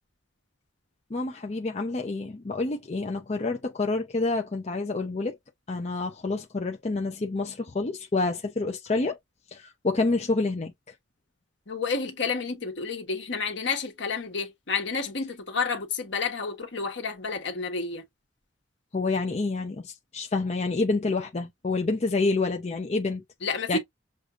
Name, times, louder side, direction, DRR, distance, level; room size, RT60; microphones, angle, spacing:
voice 1, 1.1-5.4 5.7-9.2 9.5-10.7 18.9-23.2 23.7-23.8, left 3 dB, 35° left, 0.6 m, -28 dB
voice 2, 11.7-18.0 23.4-23.8, left 4 dB, 65° left, 1.3 m, -30 dB
6.4 x 2.7 x 2.4 m
head